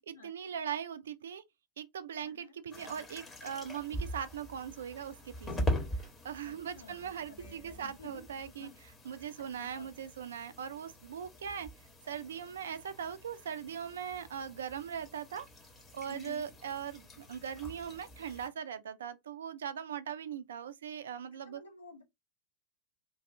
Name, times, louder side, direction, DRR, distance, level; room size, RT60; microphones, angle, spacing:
voice 1, 0.1-1.4 1.8-5.7 6.2-8.7 9.0-11.7 12.0-15.5 15.9-21.6, right 8 dB, 65° right, 0.4 m, -40 dB
voice 2, 2.2-2.5 6.4-8.2 8.6-8.7 9.6-9.9 16.1-16.5 21.4-22.0, left 2 dB, 75° left, 0.9 m, -51 dB
sound 1, 2.7-18.5, equal, 15° left, 1.1 m, -43 dB
2.6 x 2.4 x 3.2 m
figure-of-eight pair, 90°, 0 cm